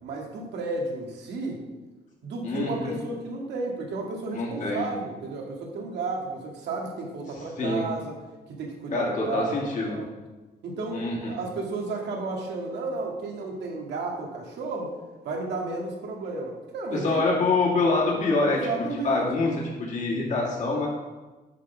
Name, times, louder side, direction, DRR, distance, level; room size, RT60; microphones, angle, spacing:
voice 1, 0.0-1.6 2.2-8.1 8.5-9.6 9.9-10.1 10.6-14.9 15.2-17.2 18.5-19.4, right 3 dB, 85° right, 0 dB, 1.9 m, -33 dB
voice 2, 2.4-3.0 4.3-4.9 7.6-7.8 8.9-10.0 10.9-11.4 16.9-18.6 19.0-19.5 19.8-20.9, left 3 dB, 45° left, -3 dB, 2.2 m, -25 dB
9.7 x 4.2 x 6.8 m, 1.2 s
cardioid pair, 175°, 17 cm